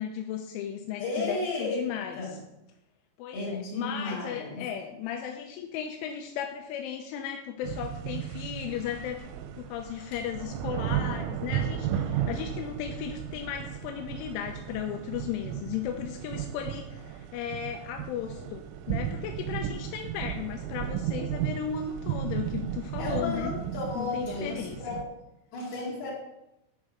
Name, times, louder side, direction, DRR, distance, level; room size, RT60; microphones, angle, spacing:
voice 1, 0.0-2.3 3.2-9.2 9.6-23.5 24.0-24.8, left 9 dB, 85° left, 3 dB, 2.9 m, -35 dB
voice 2, 1.0-1.9 2.2-2.4 3.3-4.6 23.0-25.0 25.5-26.1, left 2 dB, 55° left, -5 dB, 4.1 m, -33 dB
sound 1, 7.6-25.0, right 10 dB, 85° right, 3.2 m, -34 dB
11.0 x 4.6 x 5.0 m, 0.90 s
omnidirectional pair, 6.0 m